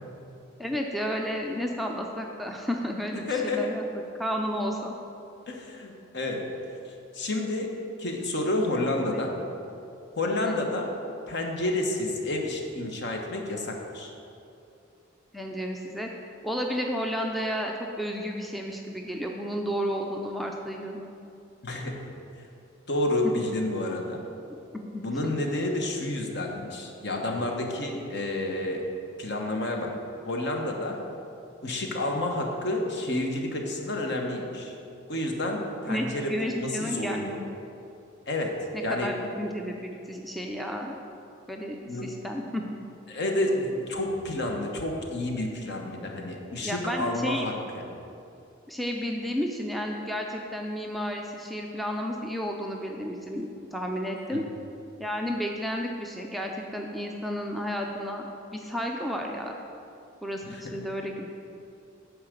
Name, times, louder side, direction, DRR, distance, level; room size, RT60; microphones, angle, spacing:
voice 1, 0.6-3.8 4.1-5.0 9.0-9.2 15.3-16.1 16.4-21.0 24.5-25.3 35.9-37.6 38.7-41.0 41.5-42.6 46.6-47.5 48.7-54.4 55.0-59.5 60.2-61.5, equal, ahead, 1 dB, 0.4 m, -32 dB
voice 2, 3.1-3.7 5.5-6.5 7.1-7.7 8.0-9.3 10.2-10.9 11.3-14.1 21.6-22.1 22.9-24.2 25.0-28.8 29.2-29.9 30.2-31.0 31.6-34.7 35.1-37.4 38.3-39.2 41.9-42.1 43.1-47.9 54.3-54.4 60.5-60.8, left 1 dB, 55° left, 1 dB, 1.1 m, -30 dB
9.6 x 4.8 x 6.6 m, 2.7 s
head